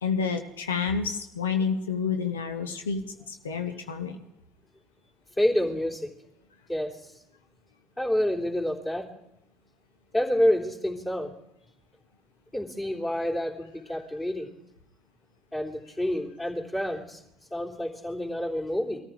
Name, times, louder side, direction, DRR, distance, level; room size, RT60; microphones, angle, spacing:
voice 1, 0.0-4.2, left 5 dB, 85° left, 7 dB, 0.8 m, -29 dB
voice 2, 5.4-6.1 6.7-7.0 8.0-9.1 10.1-11.3 12.5-14.5 15.5-17.2 17.5-19.0, left 1 dB, 20° left, 0 dB, 3.6 m, -28 dB
21.5 x 14.0 x 4.6 m, 0.79 s
hypercardioid pair, 60°, 0 cm